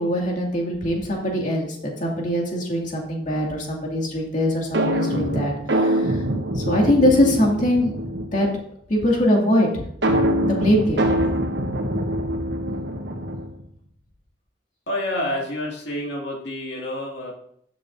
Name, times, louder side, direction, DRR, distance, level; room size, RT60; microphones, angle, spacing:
voice 1, 0.0-1.7 2.0-6.2 6.5-8.0 8.3-8.5 8.9-9.9 10.5-11.0, left 1 dB, 45° left, -2 dB, 2.4 m, -22 dB
sound 1, 4.7-8.5 10.0-13.6, equal, 80° right, 1.2 m, -24 dB
voice 2, 14.9-17.3, left 1 dB, 75° left, -1 dB, 2.4 m, -28 dB
13.5 x 7.4 x 2.7 m, 0.69 s
head